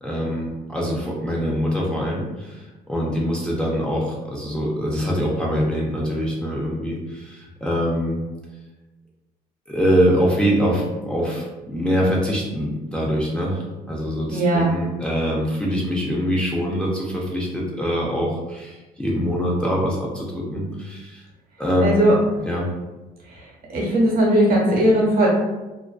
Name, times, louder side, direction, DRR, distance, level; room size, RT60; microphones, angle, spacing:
voice 1, 0.0-8.2 9.7-21.2 21.6-22.1 22.4-22.7, equal, 5° left, -4 dB, 0.4 m, -24 dB
voice 2, 14.3-14.7 21.8-22.2 23.7-25.3, right 1 dB, 60° right, -3 dB, 1.0 m, -18 dB
2.5 x 2.1 x 2.3 m, 1.1 s
cardioid pair, 110°, 17 cm